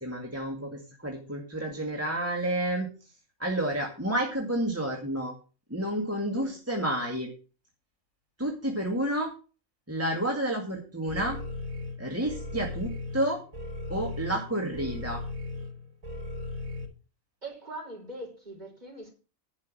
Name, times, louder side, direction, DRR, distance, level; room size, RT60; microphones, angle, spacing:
voice 1, 0.0-2.9 3.4-5.3 5.7-7.3 8.4-9.3 9.9-11.4 12.0-13.4 13.9-15.2, right 1 dB, 10° right, 0 dB, 2.0 m, -30 dB
voice 2, 6.2-6.6 17.4-19.1, right 1 dB, 30° right, 0 dB, 5.1 m, -42 dB
sound 1, 11.1-16.8, left 2 dB, 85° right, 3.8 m, -37 dB
10.5 x 6.4 x 7.6 m, 0.35 s
omnidirectional pair, 1.4 m